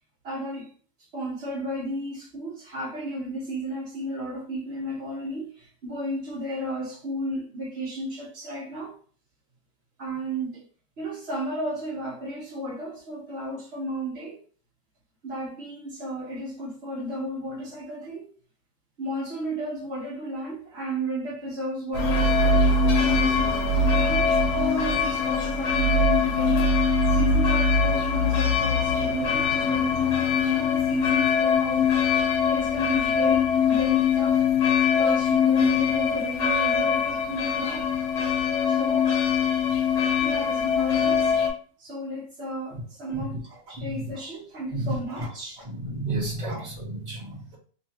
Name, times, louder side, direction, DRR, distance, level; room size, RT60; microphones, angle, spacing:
voice 1, 0.2-0.7 1.1-8.9 10.0-10.6 11.0-14.4 15.2-18.3 19.0-22.7 23.0-26.7 27.1-32.0 32.5-34.4 35.0-37.9 38.7-39.2 40.2-41.3 41.8-45.7 46.4-46.6, right 1 dB, 50° right, 0.8 m, -33 dB
sound 1, 21.9-41.5, left 5 dB, 65° left, 1.4 m, -22 dB
voice 2, 43.7-44.1 44.7-44.9 45.6-47.6, right 2 dB, 25° right, 1.2 m, -32 dB
3.3 x 3.0 x 2.8 m
omnidirectional pair, 2.0 m